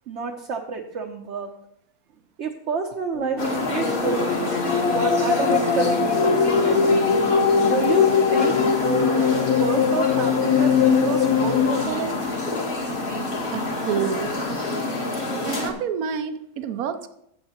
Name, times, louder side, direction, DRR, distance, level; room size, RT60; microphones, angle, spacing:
voice 1, 0.1-1.5 2.4-4.3 4.9-7.0 7.6-9.3 9.6-12.1, right 5 dB, 60° right, 2 dB, 1.0 m, -29 dB
sound 1, 3.1-11.9, left 6 dB, 85° left, 1.3 m, -21 dB
sound 2, 3.4-15.7, left 2 dB, 40° left, 1.6 m, -27 dB
voice 2, 13.5-14.7 15.4-17.1, right 7 dB, 80° right, 10 dB, 1.1 m, -29 dB
14.0 x 7.8 x 2.9 m, 0.76 s
omnidirectional pair, 1.5 m